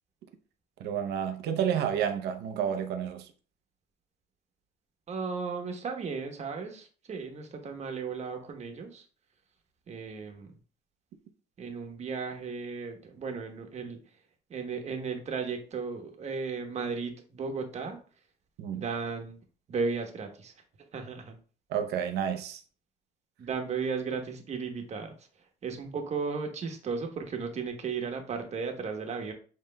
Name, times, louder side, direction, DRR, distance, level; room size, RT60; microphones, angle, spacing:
voice 1, 0.8-3.3 18.6-18.8 21.7-22.6, right 8 dB, 80° right, 0.7 m, -30 dB
voice 2, 5.1-9.1 9.9-10.5 11.6-14.2 14.5-18.0 18.7-19.4 19.7-20.5 20.9-21.4 23.4-29.3, right 5 dB, 40° right, 1.0 m, -35 dB
7.5 x 3.1 x 2.2 m
cardioid pair, 110°, 17 cm